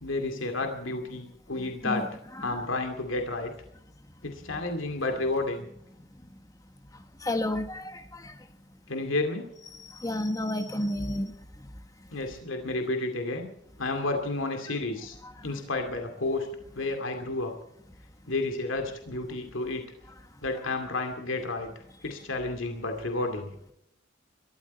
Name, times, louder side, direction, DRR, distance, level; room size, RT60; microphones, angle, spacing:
voice 1, 0.0-2.1 2.4-3.5 4.2-5.7 8.9-9.4 12.1-13.5 13.8-15.2 15.4-16.5 16.8-17.5 18.3-19.8 20.4-21.7 22.0-23.5, left 2 dB, 80° left, 5 dB, 2.4 m, -31 dB
voice 2, 1.6-2.0 2.4-2.6 7.2-8.4 9.7-11.7 15.2-15.3, left 1 dB, 15° left, 8 dB, 1.3 m, -32 dB
22.0 x 13.5 x 4.3 m, 0.76 s
head